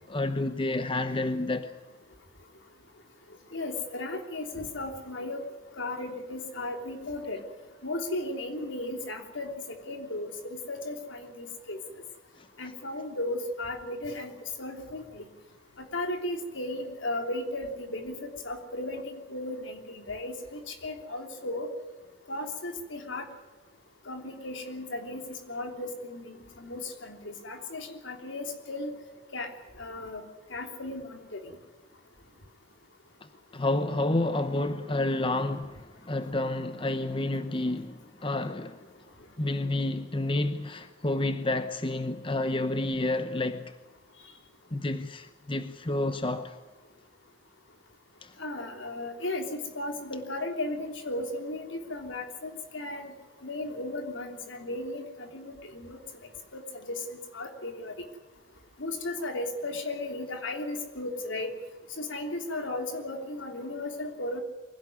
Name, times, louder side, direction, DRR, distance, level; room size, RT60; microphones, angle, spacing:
voice 1, 0.1-1.7 12.4-12.5 33.5-38.8 39.4-43.7 44.7-46.6 48.2-48.3, left 2 dB, 25° left, 0.8 m, -30 dB
voice 2, 3.5-5.4 5.8-7.4 7.8-11.8 12.6-14.3 14.6-15.3 15.8-21.7 22.3-23.3 24.1-28.9 29.3-29.5 29.8-30.2 30.5-31.5 48.4-53.1 53.4-56.0 56.5-57.9 58.8-61.5 62.0-64.4, left 2 dB, 75° left, 3.4 m, -35 dB
23.5 x 17.0 x 9.5 m
head